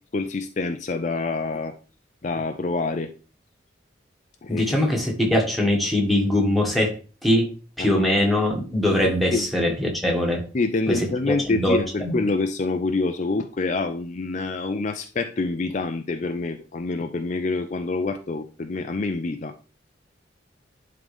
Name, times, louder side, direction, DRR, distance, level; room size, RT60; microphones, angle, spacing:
voice 1, 0.1-1.7 2.2-3.1 4.4-4.7 7.8-8.0 9.3-9.5 10.5-19.5, left 3 dB, 40° left, 6 dB, 0.5 m, -26 dB
voice 2, 4.5-6.9 7.2-7.5 7.8-10.4 10.9-12.1, left 1 dB, ahead, -1 dB, 1.7 m, -22 dB
11.0 x 3.8 x 3.4 m, 0.37 s
head